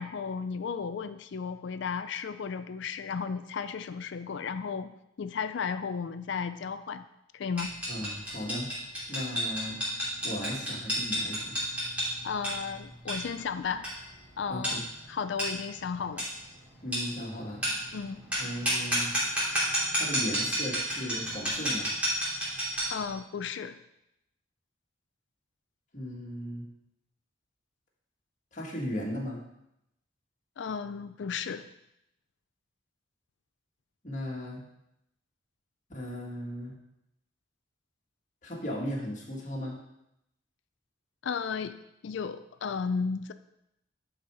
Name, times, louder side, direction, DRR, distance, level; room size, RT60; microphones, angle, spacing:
voice 1, 0.0-7.0 7.3-7.7 12.2-13.9 14.4-16.3 17.9-18.2 22.9-23.8 30.6-31.7 41.2-41.8 42.0-43.3, left 6 dB, 60° left, 11 dB, 0.4 m, -34 dB
sound 1, 7.6-23.0, equal, 5° right, 2.8 m, -31 dB
voice 2, 7.9-8.7 9.1-9.8 10.2-11.6 14.5-14.8 16.8-17.6 18.4-19.1 19.9-21.9 25.9-26.7 28.5-29.4 34.0-34.6 35.9-36.7 38.4-39.8, equal, 40° left, -3 dB, 1.8 m, -36 dB
10.5 x 4.3 x 4.8 m, 0.83 s
head